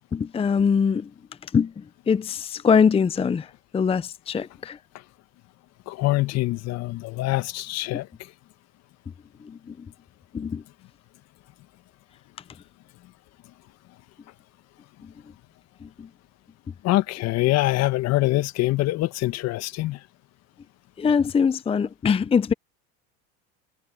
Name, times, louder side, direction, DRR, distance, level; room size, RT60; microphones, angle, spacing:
voice 1, 0.1-1.1 1.5-4.8 9.4-9.9 10.3-10.6 15.0-15.1 15.8-16.1 21.0-22.5, left 6 dB, 20° left, 0.7 m, -23 dB
voice 2, 5.9-8.1 16.8-20.0, left 18 dB, 55° left, 1.6 m, -24 dB
hypercardioid pair, 95°, 32 cm